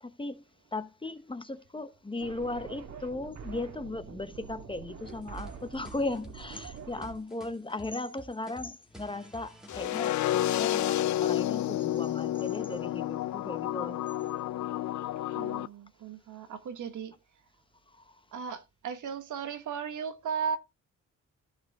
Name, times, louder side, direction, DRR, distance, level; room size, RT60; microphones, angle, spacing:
voice 1, 0.0-0.4 0.7-14.0, left 2 dB, 15° left, 0.9 m, -37 dB
sound 1, 2.2-7.2, right 6 dB, 60° right, 1.8 m, -45 dB
sound 2, 5.1-10.1, right 1 dB, ahead, 2.1 m, -51 dB
sound 3, 9.7-15.7, left 13 dB, 70° left, 0.5 m, -30 dB
voice 2, 15.3-17.1 18.3-20.6, right 6 dB, 80° right, 1.5 m, -36 dB
14.5 x 5.1 x 3.5 m
cardioid pair, 105°, 30 cm